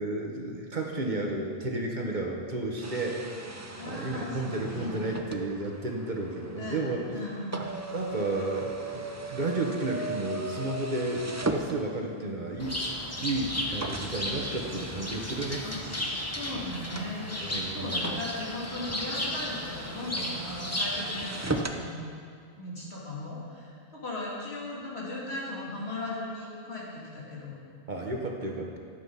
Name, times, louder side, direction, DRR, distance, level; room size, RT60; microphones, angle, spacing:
voice 1, 0.0-3.2 3.8-7.0 7.9-12.8 13.2-15.6 17.4-18.0 27.9-28.8, right 2 dB, 45° right, 0 dB, 1.4 m, -32 dB
sound 1, 2.8-12.3 13.0-13.1 13.8-21.8, right 2 dB, 20° right, 0.6 m, -38 dB
voice 2, 3.7-5.2 6.6-7.7 15.6-22.1 22.6-27.6 28.4-28.5, left 1 dB, 75° left, -6 dB, 3.2 m, -38 dB
Bird, 12.6-21.6, left 1 dB, 15° left, 1.1 m, -34 dB
13.0 x 8.4 x 5.7 m, 2.2 s
omnidirectional pair, 1.1 m